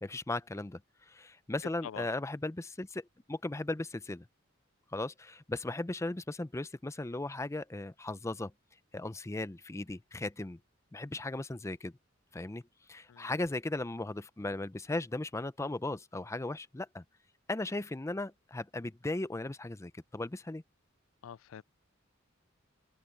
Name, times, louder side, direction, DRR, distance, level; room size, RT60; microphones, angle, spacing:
voice 1, 0.0-0.8 1.1-4.3 4.9-8.5 8.9-10.6 10.9-11.9 12.3-12.6 12.9-17.0 17.5-20.6, left 2 dB, 15° left, 0.5 m, -37 dB
voice 2, 21.2-21.6, left 8 dB, 80° left, 0.4 m, -45 dB
open air
head